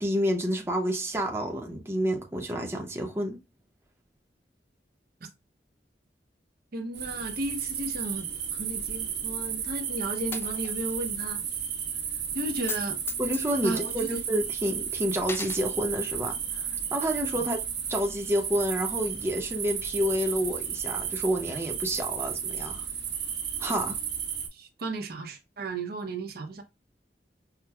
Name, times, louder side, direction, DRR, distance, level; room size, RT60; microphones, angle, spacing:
voice 1, 0.0-3.4 13.2-17.6 17.9-22.8 23.6-24.0, equal, 15° right, 0.7 m, -29 dB
voice 2, 6.7-11.4 12.3-13.0 13.6-14.2 24.5-26.6, right 2 dB, 60° right, 0.7 m, -34 dB
sound 1, 6.9-24.5, right 8 dB, 80° right, 1.2 m, -33 dB
Coin (dropping), 10.3-11.2 11.5-11.6 12.6-12.8 13.1-14.7 15.2-15.6, left 5 dB, 15° left, 0.3 m, -38 dB
5.7 x 2.1 x 2.2 m
head